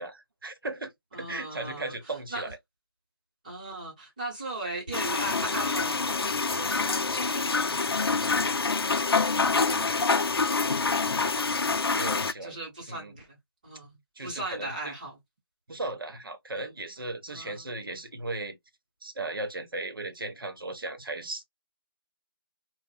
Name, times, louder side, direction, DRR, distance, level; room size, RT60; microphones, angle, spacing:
voice 1, 0.0-2.6 9.6-10.3 10.9-11.5 11.9-12.6 12.9-13.1 14.2-14.9 15.7-18.6 19.0-21.4, right 2 dB, 65° right, 0.8 m, -37 dB
voice 2, 1.1-1.9 2.3-2.5 3.4-8.7 11.5-11.6 12.4-13.4 13.6-15.2 16.5-16.7 17.3-17.7, right 2 dB, 20° right, 0.9 m, -38 dB
sound 1, 4.9-12.3, left 4 dB, 80° left, 0.4 m, -26 dB
2.6 x 2.0 x 2.3 m
figure-of-eight pair, 165°, 13 cm